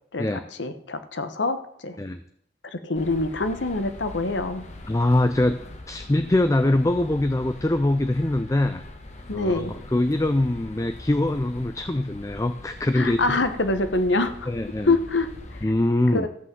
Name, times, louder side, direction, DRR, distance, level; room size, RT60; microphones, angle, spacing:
voice 1, 0.1-2.0 2.6-4.6 9.3-9.7 12.9-14.5 14.8-15.7 16.1-16.3, left 2 dB, 85° left, 10 dB, 1.2 m, -25 dB
sound 1, 2.9-15.6, left 1 dB, 40° left, 1.3 m, -42 dB
voice 2, 4.9-5.6 5.9-8.8 9.3-13.2 14.5-15.0 15.6-16.3, left 1 dB, 15° left, 10 dB, 0.4 m, -23 dB
13.5 x 5.9 x 7.7 m, 0.66 s
head